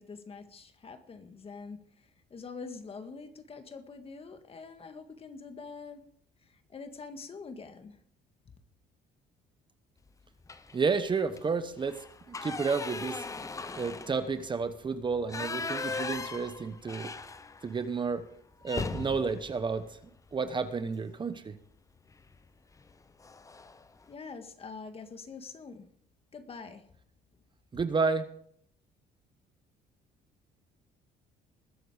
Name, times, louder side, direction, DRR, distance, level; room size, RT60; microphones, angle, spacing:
voice 1, 0.0-6.0 6.4-8.0 24.1-25.9 26.3-26.8, left 4 dB, 35° left, 1.8 m, -45 dB
sound 1, 10.4-10.9 11.3-11.4 11.8-17.8 18.1-18.2 18.6-20.8 22.1-22.4 22.8-22.9 23.2-23.8, left 4 dB, 20° left, 0.7 m, -39 dB
voice 2, 10.7-13.2 13.7-17.1 17.6-18.3 18.6-20.0 20.3-21.5 27.7-28.2, right 5 dB, 30° right, 1.0 m, -31 dB
21.0 x 7.7 x 5.0 m
cardioid pair, 110°, 17 cm